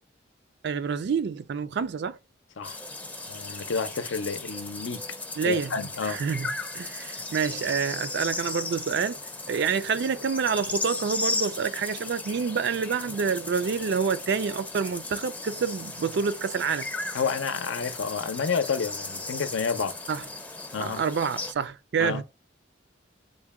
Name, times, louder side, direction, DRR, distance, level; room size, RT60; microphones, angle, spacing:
voice 1, 0.6-2.2 5.4-5.7 6.0-9.2 9.5-16.9 20.1-20.2 20.8-22.2, right 6 dB, 60° right, 0.4 m, -28 dB
sound 1, 2.6-21.5, left 2 dB, 10° left, 0.5 m, -36 dB
voice 2, 3.3-5.0 5.4-6.2 17.1-20.0 20.7-21.0 22.0-22.2, left 5 dB, 80° left, 0.6 m, -29 dB
3.7 x 2.2 x 3.5 m
head